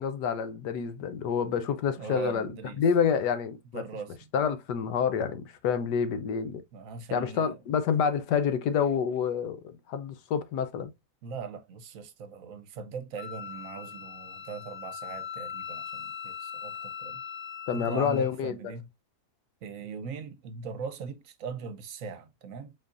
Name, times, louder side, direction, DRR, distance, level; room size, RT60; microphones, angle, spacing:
voice 1, 0.0-2.5 2.8-3.8 4.3-6.6 7.1-10.9 17.7-18.7, left 7 dB, 80° left, 1.4 m, -28 dB
voice 2, 2.0-2.8 3.7-4.3 6.7-7.6 11.2-17.2 17.7-18.9 19.6-22.7, right 5 dB, 60° right, 1.0 m, -40 dB
Wind instrument woodwind instrument, 13.2-18.3, left 8 dB, 50° left, 0.5 m, -40 dB
5.5 x 3.8 x 2.5 m
omnidirectional pair, 1.8 m